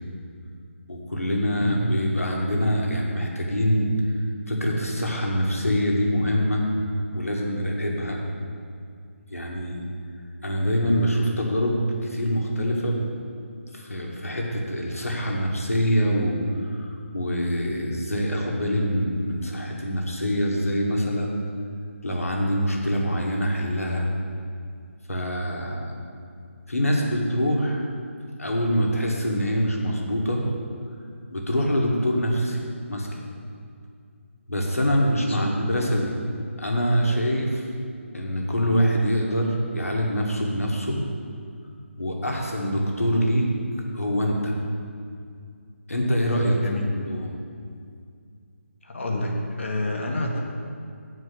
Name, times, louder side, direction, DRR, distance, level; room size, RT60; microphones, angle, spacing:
voice 1, 0.9-3.9 4.5-6.6 7.1-8.2 9.3-9.8 10.4-13.1 13.7-21.4 22.0-24.1 25.1-25.9 26.7-27.8 28.4-30.4 31.3-32.6 32.9-33.2 34.5-36.1 36.6-37.6 38.1-41.0 42.0-43.5 43.9-44.5 45.9-46.6 46.9-47.3, equal, 85° left, -1 dB, 1.6 m, -24 dB
voice 2, 46.6-46.9 48.8-50.4, left 2 dB, 60° left, 0 dB, 1.4 m, -28 dB
8.1 x 4.5 x 6.7 m, 2.3 s
figure-of-eight pair, 155°, 7 cm